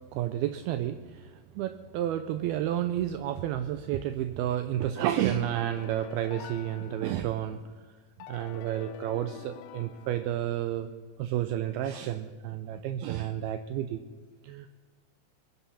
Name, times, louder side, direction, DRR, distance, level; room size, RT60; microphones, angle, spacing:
voice 1, 0.1-7.6 8.3-10.9 11.2-14.0 14.4-14.7, right 11 dB, 80° right, 10 dB, 2.3 m, -31 dB
sound 1, 5.0-7.6 8.2-10.7, left 12 dB, 85° left, 2.0 m, -47 dB
22.0 x 10.0 x 5.6 m, 1.4 s
omnidirectional pair, 4.9 m